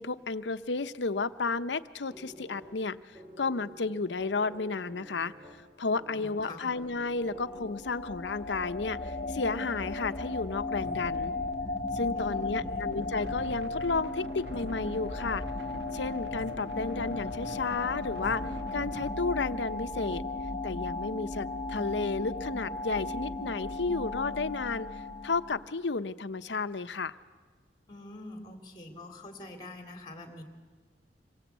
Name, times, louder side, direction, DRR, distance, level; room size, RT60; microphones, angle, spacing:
voice 1, 0.0-3.0 3.4-5.3 5.8-11.3 11.9-15.4 15.9-18.4 18.7-20.2 20.6-24.9 25.2-27.1, left 4 dB, 80° left, 12 dB, 0.8 m, -32 dB
sound 1, 2.1-8.1, right 1 dB, 15° right, 3.0 m, -50 dB
voice 2, 6.1-6.7 12.1-12.9 27.9-30.4, left 2 dB, 25° left, 5 dB, 3.1 m, -45 dB
sound 2, 6.8-25.7, left 3 dB, 40° left, 1.9 m, -36 dB
sound 3, 10.8-19.1, right 1 dB, 75° right, 2.0 m, -45 dB
26.0 x 23.0 x 8.2 m, 1.4 s
head